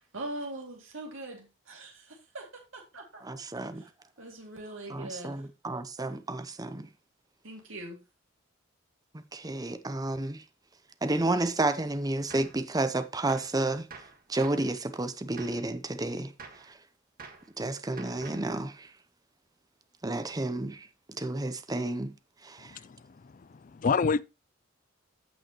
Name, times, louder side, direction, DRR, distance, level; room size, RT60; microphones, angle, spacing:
voice 1, 0.0-3.2 3.6-3.9 4.2-5.5 7.4-8.0, right 2 dB, 80° right, 2.5 m, -42 dB
voice 2, 3.2-3.9 4.9-6.9 9.1-10.4 11.0-13.9 14.3-16.8 17.6-18.9 20.0-22.1 22.4-22.8, right 2 dB, 20° right, 0.7 m, -31 dB
Gunshot gunfire, 12.3-12.6 13.3-13.6 13.9-14.7 15.4-15.7 16.4-16.7 17.2-17.5 18.0-18.5, right 4 dB, 45° right, 1.6 m, -47 dB
voice 3, 22.6-24.2, left 5 dB, 40° left, 0.4 m, -29 dB
15.0 x 5.5 x 3.0 m
head